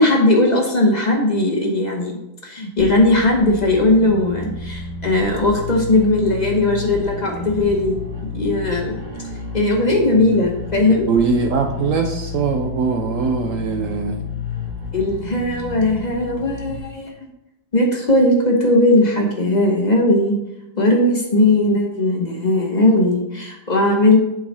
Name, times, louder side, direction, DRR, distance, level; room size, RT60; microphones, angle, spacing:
voice 1, 0.0-2.2 2.4-8.0 8.3-8.9 9.5-11.1 14.9-17.1 17.7-20.4 20.8-24.2, left 2 dB, 35° left, 0 dB, 0.8 m, -18 dB
sound 1, 2.8-16.8, left 5 dB, 30° right, 1.3 m, -31 dB
voice 2, 11.1-14.2, right 5 dB, 70° right, 5 dB, 0.8 m, -21 dB
7.3 x 3.9 x 4.1 m, 0.90 s
omnidirectional pair, 1.8 m